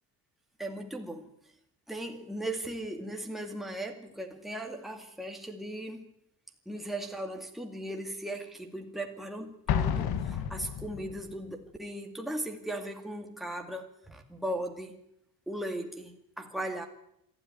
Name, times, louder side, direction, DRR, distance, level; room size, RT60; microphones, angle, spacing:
voice 1, 0.6-1.3 1.9-6.1 6.7-15.0 15.5-16.9, right 1 dB, ahead, 2 dB, 2.2 m, -37 dB
Explosion, 9.7-11.3, left 8 dB, 70° left, 1.6 m, -30 dB
26.5 x 12.5 x 9.6 m, 0.81 s
cardioid pair, 155°, 38 cm